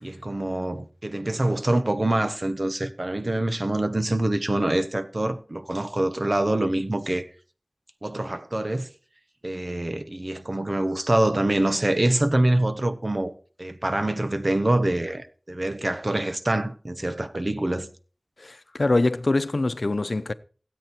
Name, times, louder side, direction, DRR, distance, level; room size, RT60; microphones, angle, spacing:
voice 1, 0.0-7.3 8.0-8.9 9.4-13.3 13.6-17.9, right 1 dB, 50° right, 1.3 m, -25 dB
voice 2, 18.4-20.3, left 2 dB, 75° left, 0.7 m, -24 dB
16.5 x 8.6 x 4.5 m
wide cardioid pair, 45°, 0 cm